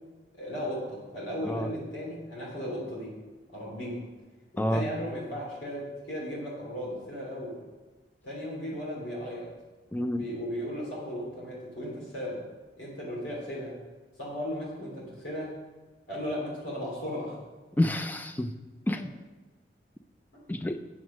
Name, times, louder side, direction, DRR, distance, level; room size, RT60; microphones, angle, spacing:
voice 1, 0.4-3.1 3.5-4.0 4.5-7.6 8.2-9.5 10.1-12.4 12.8-13.8 14.2-15.5 16.1-17.4, equal, 90° left, -4 dB, 3.2 m, -36 dB
voice 2, 9.9-10.2 17.8-18.5 18.9-19.1 20.5-20.8, left 1 dB, 10° left, 8 dB, 0.4 m, -28 dB
8.1 x 7.1 x 6.2 m, 1.2 s
head